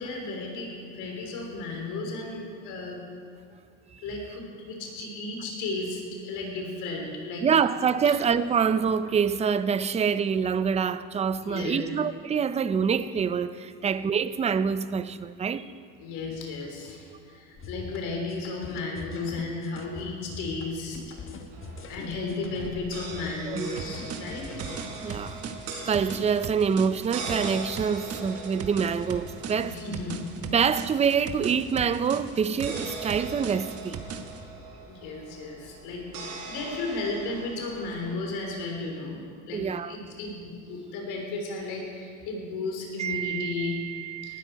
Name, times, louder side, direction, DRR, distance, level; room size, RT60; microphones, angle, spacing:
voice 1, 0.0-3.0 4.0-7.5 8.0-8.3 11.4-11.9 13.8-14.0 16.0-21.0 21.3-21.4 21.9-24.7 29.5-30.2 34.9-39.2 39.5-43.8 44.2-44.4, left 3 dB, 80° left, 3.4 m, -34 dB
voice 2, 7.4-15.7 23.4-23.8 25.0-25.4 25.9-29.8 30.5-34.0 39.5-40.0 43.0-44.4, right 6 dB, 20° right, 0.4 m, -26 dB
sound 1, 17.6-25.3, left 3 dB, 35° left, 1.3 m, -42 dB
sound 2, 21.5-38.1, right 3 dB, 75° right, 4.6 m, -41 dB
sound 3, 23.8-34.4, right 6 dB, 40° right, 1.2 m, -39 dB
18.5 x 12.5 x 4.6 m
cardioid pair, 115°, 37 cm